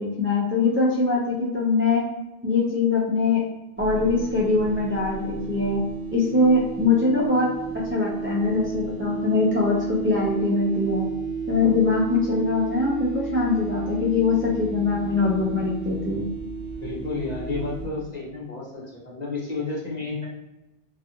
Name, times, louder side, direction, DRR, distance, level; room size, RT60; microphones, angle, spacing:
voice 1, 0.0-2.0 2.4-3.4 3.8-5.8 6.1-7.5 7.9-11.1 11.5-16.2, left 3 dB, 20° right, -6 dB, 0.3 m, -22 dB
sound 1, 3.8-17.9, right 5 dB, 65° right, 0.8 m, -32 dB
voice 2, 16.8-20.3, left 3 dB, 45° left, -5 dB, 0.9 m, -31 dB
2.5 x 2.3 x 2.8 m, 0.96 s
omnidirectional pair, 1.1 m